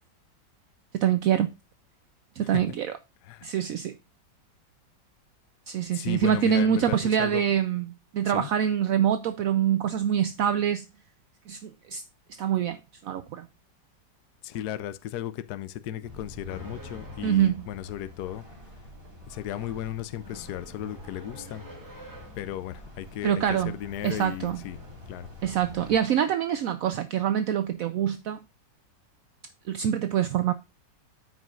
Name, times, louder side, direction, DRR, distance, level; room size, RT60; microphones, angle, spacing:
voice 1, 0.9-1.5 2.4-2.9 3.4-3.9 5.7-10.8 11.5-12.0 12.4-12.8 13.0-13.5 17.2-17.7 23.2-23.7 24.0-24.6 25.4-28.4 29.7-30.5, right 9 dB, 70° right, 0.8 m, -25 dB
voice 2, 3.2-3.7 5.9-7.4 8.2-8.5 14.4-18.4 19.3-21.6 22.4-24.8 25.1-25.3, left 12 dB, 70° left, 1.1 m, -35 dB
sound 1, 16.0-26.0, left 2 dB, 45° right, 3.3 m, -47 dB
sound 2, 16.5-17.7 20.2-22.5 24.6-25.0 25.4-26.0, right 1 dB, 10° right, 1.6 m, -48 dB
13.5 x 5.0 x 2.4 m
omnidirectional pair, 2.0 m